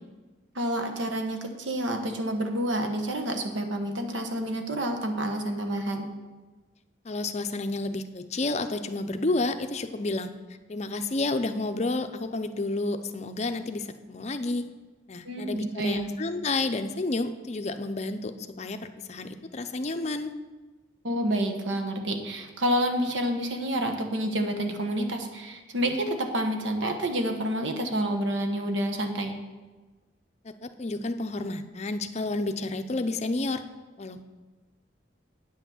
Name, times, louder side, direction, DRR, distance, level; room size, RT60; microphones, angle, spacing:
voice 1, 0.5-6.0 15.2-16.1 21.0-29.4, right 1 dB, 80° right, 5 dB, 1.2 m, -29 dB
voice 2, 7.0-10.3 10.7-14.7 15.1-20.3 30.4-33.6 34.0-34.3, left 2 dB, 35° left, 9 dB, 0.5 m, -30 dB
9.1 x 5.9 x 7.1 m, 1.2 s
head